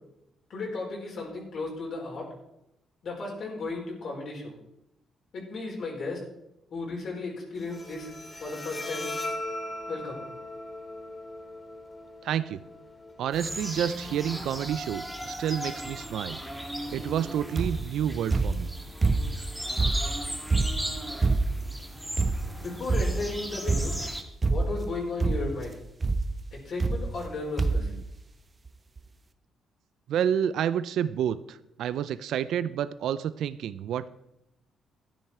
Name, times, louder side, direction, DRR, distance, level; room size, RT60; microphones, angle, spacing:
voice 1, 0.5-2.3 3.0-4.5 5.3-6.2 6.7-8.1 8.4-9.1 9.9-10.2 22.6-23.9 24.5-25.8 26.5-27.9, left 3 dB, 60° left, -2 dB, 4.4 m, -35 dB
Bowed string instrument, 7.6-14.6, left 1 dB, 20° left, 2.6 m, -39 dB
voice 2, 12.2-12.6 13.2-16.4 16.9-18.7 27.8-28.0 30.1-34.1, right 9 dB, 75° right, 15 dB, 0.4 m, -29 dB
sound 1, 13.3-24.2, equal, 5° right, 1.8 m, -37 dB
sound 2, 17.6-17.9 18.3-19.4 19.8-21.7 22.2-22.6 22.9-23.3 23.7-24.1 24.4-24.9 25.2-25.6 26.0-26.3 26.8-27.3 27.6-27.9 28.7-28.8 29.0-29.1, right 3 dB, 30° right, 1.0 m, -26 dB
12.5 x 10.0 x 4.4 m, 0.86 s
cardioid pair, 90°, 0 cm